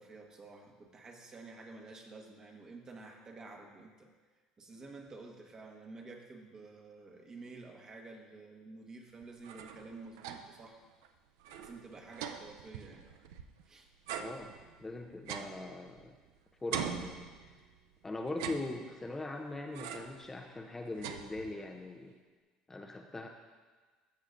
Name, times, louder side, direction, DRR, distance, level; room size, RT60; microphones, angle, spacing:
voice 1, 0.0-4.1 4.6-10.8 11.6-13.1 13.6-13.9, right 3 dB, 30° right, 2 dB, 1.3 m, -50 dB
sound 1, 9.2-10.7 11.0-11.1 11.4-13.6 14.1-16.3 16.7-17.8 18.3-19.2 19.7-20.3 20.6-21.8, right 8 dB, 85° right, 0.5 m, -43 dB
voice 2, 14.2-14.5 14.8-16.1 16.6-17.3 18.0-22.1 22.7-23.3, left 2 dB, 15° left, 3 dB, 0.6 m, -41 dB
14.0 x 6.3 x 2.6 m, 1.4 s
supercardioid pair, 90°, 2 cm